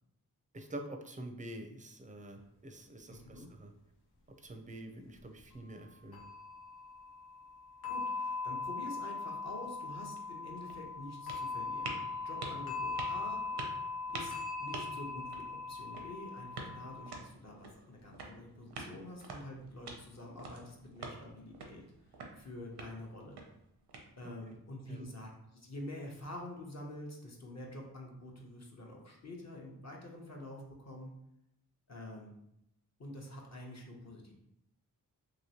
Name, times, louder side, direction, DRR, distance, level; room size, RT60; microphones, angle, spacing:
voice 1, 0.5-3.7 4.4-6.2 24.2-24.3 24.9-25.0, right 1 dB, 20° right, 4 dB, 0.5 m, -46 dB
voice 2, 3.1-3.5 7.9-13.4 14.1-14.3 14.6-21.8 22.4-23.4 24.2-31.1 31.9-32.3 33.0-34.3, left 1 dB, 45° left, -1 dB, 0.8 m, -47 dB
sound 1, 5.2-5.9 6.1-17.2, left 4 dB, 70° left, 0.8 m, -40 dB
sound 2, 10.1-24.5, right 3 dB, 90° right, 0.6 m, -49 dB
3.0 x 2.9 x 2.8 m, 0.80 s
cardioid pair, 55°, 39 cm